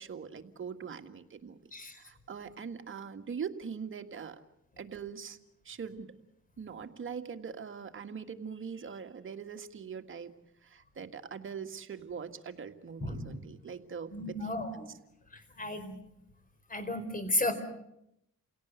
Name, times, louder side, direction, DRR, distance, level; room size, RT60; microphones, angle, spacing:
voice 1, 0.0-1.6 1.9-4.4 4.8-5.4 5.7-6.1 6.6-10.3 10.6-14.6 15.6-15.7, right 6 dB, 40° right, 6 dB, 1.9 m, -42 dB
voice 2, 14.1-14.9 15.6-16.0 16.7-17.5, left 1 dB, 25° left, 10 dB, 4.6 m, -33 dB
28.5 x 17.5 x 8.2 m, 0.81 s
cardioid pair, 90°, 30 cm